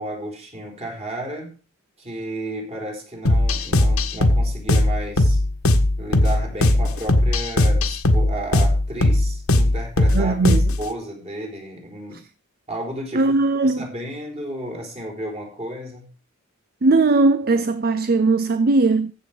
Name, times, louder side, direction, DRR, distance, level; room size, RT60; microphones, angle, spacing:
voice 1, 0.0-1.5 2.0-5.4 6.0-12.2 12.7-13.3 13.6-16.1, right 1 dB, 30° right, 4.5 m, -33 dB
sound 1, 3.3-10.9, left 1 dB, 85° left, 1.5 m, -18 dB
voice 2, 10.1-10.7 13.1-13.9 16.8-19.1, right 3 dB, 45° right, 0.6 m, -19 dB
14.5 x 7.5 x 5.1 m
head